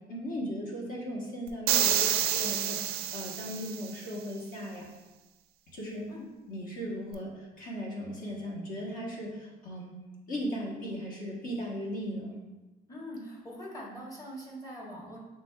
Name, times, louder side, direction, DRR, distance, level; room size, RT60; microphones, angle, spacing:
voice 1, 0.1-4.9 5.7-6.1 6.5-10.0 10.3-12.3, equal, 55° left, -3 dB, 1.2 m, -37 dB
sound 1, 1.7-4.0, right 10 dB, 70° right, 0.4 m, -28 dB
voice 2, 12.9-15.2, equal, 20° left, -3 dB, 1.3 m, -43 dB
6.1 x 3.3 x 2.3 m, 1.1 s
cardioid pair, 110°, 17 cm